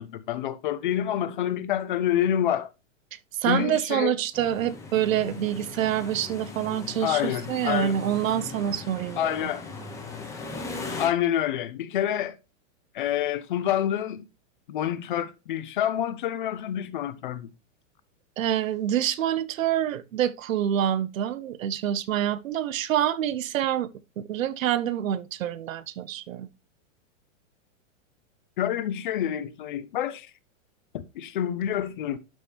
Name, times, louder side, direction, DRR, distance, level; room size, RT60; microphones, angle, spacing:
voice 1, 0.0-2.7 3.5-4.1 7.0-7.9 9.2-9.6 11.0-12.3 12.9-14.2 14.7-17.5 28.6-30.3 30.9-32.2, left 10 dB, 40° left, 0.6 m, -27 dB
voice 2, 3.4-9.5 18.4-23.9 24.2-26.5, right 11 dB, 90° right, 0.9 m, -27 dB
sound 1, 4.3-11.1, left 3 dB, 10° left, 0.8 m, -38 dB
12.0 x 4.4 x 3.3 m
supercardioid pair, 170°, 39 cm